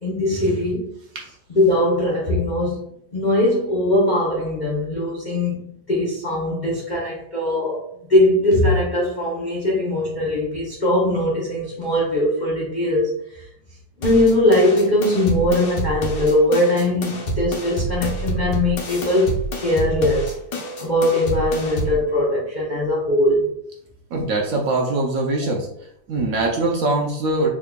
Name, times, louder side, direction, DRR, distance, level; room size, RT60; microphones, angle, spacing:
voice 1, 0.0-0.9 1.5-2.8 3.1-5.6 5.9-13.4 14.0-20.3 20.8-23.6, left 1 dB, 65° left, -5 dB, 0.4 m, -20 dB
sound 1, 14.0-22.0, right 1 dB, 85° left, 1.5 m, -28 dB
voice 2, 24.1-25.7 26.1-27.5, right 2 dB, 70° right, 0 dB, 0.8 m, -22 dB
3.5 x 2.2 x 3.6 m, 0.71 s
omnidirectional pair, 1.9 m